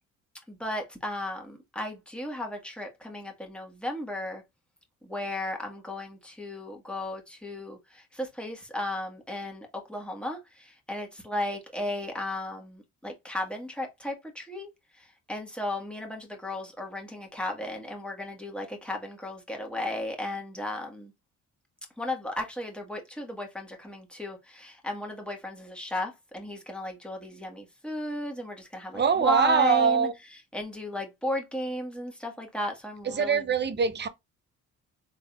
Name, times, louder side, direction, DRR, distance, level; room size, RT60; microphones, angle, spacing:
voice 1, 0.5-4.4 5.0-14.7 15.0-21.1 22.0-30.1 30.5-33.4, left 1 dB, 5° left, 1.6 m, -35 dB
voice 2, 28.9-30.1 33.0-34.1, right 6 dB, 35° right, 0.8 m, -23 dB
3.8 x 3.7 x 2.4 m
cardioid pair, 90°, 30 cm